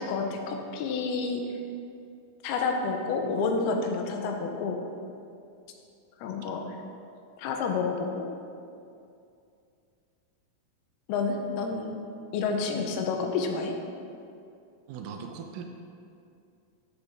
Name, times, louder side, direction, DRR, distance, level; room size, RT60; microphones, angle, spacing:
voice 1, 0.0-1.4 2.4-4.8 6.2-6.6 7.4-8.3 11.1-12.0 12.3-13.8, left 4 dB, 90° left, 3 dB, 2.7 m, -29 dB
voice 2, 14.9-15.6, right 6 dB, 90° right, 3 dB, 1.8 m, -39 dB
11.0 x 6.9 x 3.4 m, 2.5 s
omnidirectional pair, 4.5 m